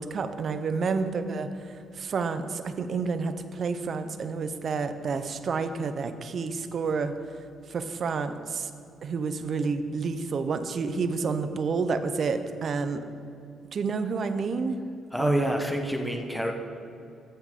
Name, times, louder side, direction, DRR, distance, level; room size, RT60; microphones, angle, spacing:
voice 1, 0.0-1.5 2.0-7.1 7.7-8.7 9.0-13.0 13.7-14.8 15.2-15.5, right 4 dB, 50° right, 10 dB, 0.6 m, -29 dB
voice 2, 15.1-16.5, equal, ahead, 3 dB, 1.0 m, -28 dB
14.0 x 7.0 x 3.7 m, 2.6 s
cardioid pair, 90°, 0 cm